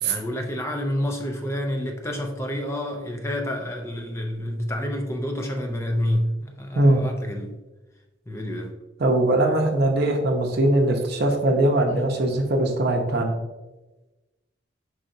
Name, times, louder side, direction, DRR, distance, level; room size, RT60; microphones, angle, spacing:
voice 1, 0.0-7.6 8.3-8.7, left 1 dB, 15° left, 3 dB, 0.4 m, -28 dB
voice 2, 9.0-13.3, right 1 dB, 55° right, 3 dB, 0.7 m, -21 dB
4.7 x 4.2 x 2.6 m, 1.1 s
head